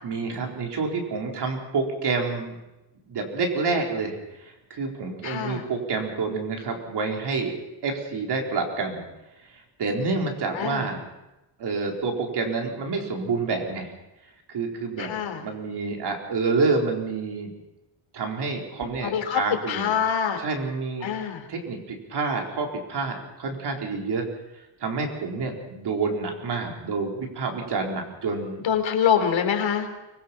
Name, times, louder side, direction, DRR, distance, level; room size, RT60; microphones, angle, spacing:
voice 1, 0.0-2.5 3.1-7.6 7.8-9.1 9.5-11.0 11.6-13.9 14.5-17.5 18.1-19.9 20.4-21.1 21.5-24.2 24.8-28.6, right 4 dB, 60° right, 1 dB, 4.2 m, -28 dB
voice 2, 5.2-5.6 10.5-10.9 15.0-15.4 19.0-20.4 21.0-21.5 28.6-29.9, left 8 dB, 75° left, 5 dB, 3.4 m, -25 dB
24.5 x 21.0 x 5.8 m, 0.98 s
wide cardioid pair, 175°, 46 cm